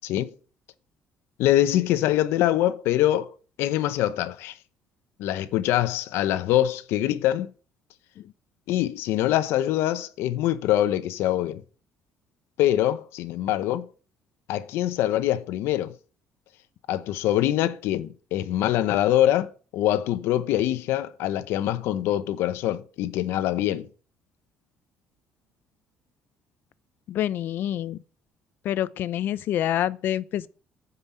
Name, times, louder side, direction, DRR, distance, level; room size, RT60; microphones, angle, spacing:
voice 1, 1.4-3.3 3.6-4.6 5.2-7.5 8.7-11.6 12.6-13.9 14.5-15.9 16.9-23.9, left 13 dB, 80° left, 0.9 m, -24 dB
voice 2, 27.1-28.0 28.6-30.5, left 11 dB, 55° left, 0.5 m, -27 dB
9.8 x 5.4 x 7.2 m
cardioid pair, 155°, 4 cm